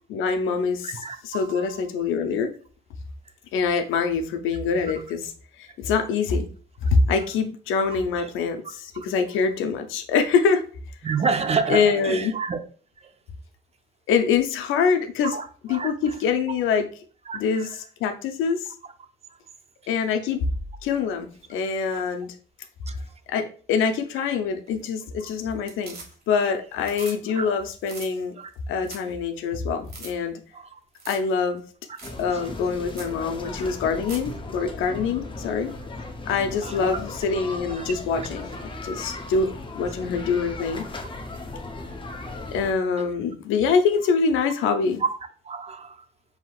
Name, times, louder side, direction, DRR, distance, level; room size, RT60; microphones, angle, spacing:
voice 1, 0.1-0.9 1.2-2.5 3.5-5.3 5.6-6.5 6.8-8.6 9.0-10.6 11.7-12.3 14.1-15.4 15.7-16.9 17.3-17.7 18.0-18.7 19.9-20.4 20.8-22.3 23.3-26.0 26.3-28.4 28.7-30.4 31.1-31.6 32.2-35.7 36.3-38.5 38.8-40.8 42.5-45.0, left 5 dB, 90° left, 0.6 m, -24 dB
voice 2, 0.8-1.8 7.1-7.2 8.2-8.3 8.6-8.7 11.0-12.6 13.0-13.1 15.2-15.9 17.3-17.8 21.9-22.0 22.9-23.0 24.2-24.3 27.0-27.1 27.3-27.5 28.4-28.5 30.5-30.8 32.3-32.5 33.2-33.3 36.6-37.0 37.7-37.9 45.0-45.1 45.4-46.1, right 5 dB, 30° right, 0.5 m, -30 dB
sound 1, 24.7-25.2 25.5-26.4 26.7-27.2 27.5-27.6 27.8-28.1 28.5-28.6 28.8-29.1 29.4-29.5 29.8-30.1 30.9-31.3 31.6-31.7 32.0-32.2 32.6-32.7 32.9-33.1 33.8-34.3 36.5-36.6, right 3 dB, 50° right, 1.4 m, -41 dB
sound 2, 32.0-42.7, left 2 dB, 25° left, 0.6 m, -37 dB
5.7 x 2.8 x 2.4 m
cardioid pair, 90°, 20 cm